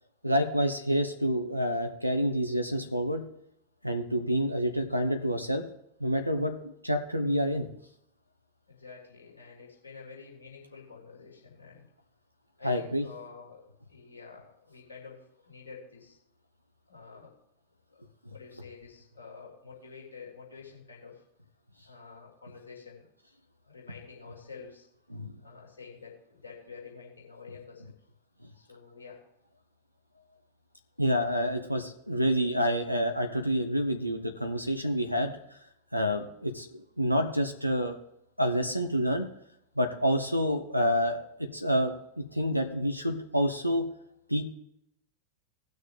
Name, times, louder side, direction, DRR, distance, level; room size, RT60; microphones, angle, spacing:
voice 1, 0.2-3.2 3.8-5.6 6.0-6.5 6.8-7.7 12.6-13.1 25.1-25.3 31.0-35.6 35.9-38.0 38.4-39.3 39.8-43.9 44.3-44.4, equal, 90° right, 6 dB, 0.9 m, -28 dB
voice 2, 8.7-11.8 12.6-16.2 16.9-17.3 17.9-18.0 18.3-21.2 21.8-23.1 23.6-24.9 25.4-27.8 28.6-29.2, left 5 dB, 75° left, -3 dB, 3.4 m, -48 dB
18.0 x 6.4 x 3.3 m, 0.78 s
figure-of-eight pair, 90°, 0 cm